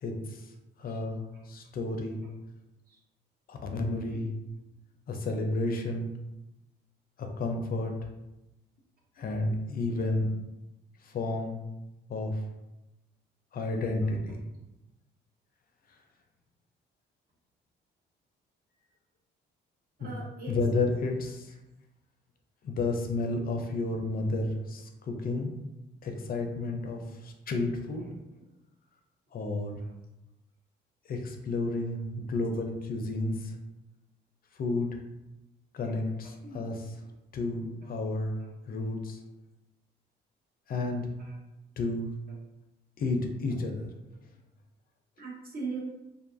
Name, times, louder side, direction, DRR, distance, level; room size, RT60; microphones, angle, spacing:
voice 1, 0.0-2.2 3.5-4.3 5.1-6.1 7.2-8.0 9.2-10.3 11.0-11.6 12.1-12.4 13.5-14.4 15.9-16.0 20.0-20.1 20.5-21.5 22.6-25.5 26.0-28.1 29.3-29.8 31.1-33.6 34.5-35.0 35.7-36.3 36.5-36.8 37.3-38.4 38.7-39.2 40.7-41.1 41.8-42.1 43.0-43.9, left 2 dB, 50° left, 3 dB, 0.4 m, -31 dB
voice 2, 20.0-20.6 28.0-28.1 35.8-35.9 36.2-36.6 37.8-37.9 38.4-38.5 40.8-40.9 41.2-41.4 42.3-42.4 43.5-43.6 44.1-44.2 45.2-45.8, right 4 dB, 50° right, -3 dB, 0.8 m, -42 dB
2.5 x 2.3 x 2.5 m, 0.96 s
cardioid pair, 90°, 20 cm